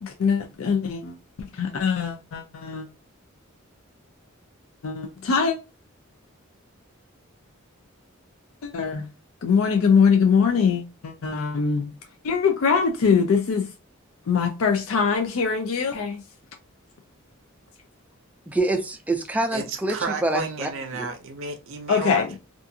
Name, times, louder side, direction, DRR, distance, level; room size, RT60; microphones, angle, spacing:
voice 1, 0.0-1.1 1.5-2.9 4.8-5.6 8.6-9.1 9.4-11.9 12.2-13.7 14.3-16.2 21.9-22.3, left 6 dB, 70° left, 0.4 m, -22 dB
voice 2, 18.5-21.1, right 2 dB, 5° right, 0.3 m, -26 dB
voice 3, 19.5-22.4, right 4 dB, 65° right, 0.5 m, -32 dB
2.5 x 2.4 x 2.7 m
head